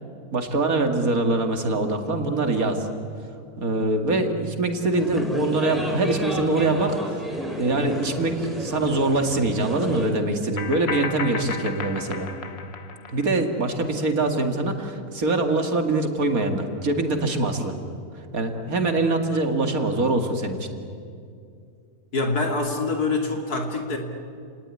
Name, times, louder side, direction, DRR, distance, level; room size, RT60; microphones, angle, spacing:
voice 1, 0.3-2.9 3.6-12.3 13.1-17.8 18.3-20.7, right 2 dB, 65° right, 5 dB, 2.6 m, -24 dB
sound 1, 4.9-10.1, equal, ahead, 3.8 m, -32 dB
sound 2, 8.5-8.6 10.6-13.4, left 5 dB, 45° left, 1.3 m, -33 dB
voice 2, 22.1-24.0, left 3 dB, 85° left, 3 dB, 3.4 m, -25 dB
30.0 x 19.0 x 9.9 m, 2.4 s
omnidirectional pair, 1.6 m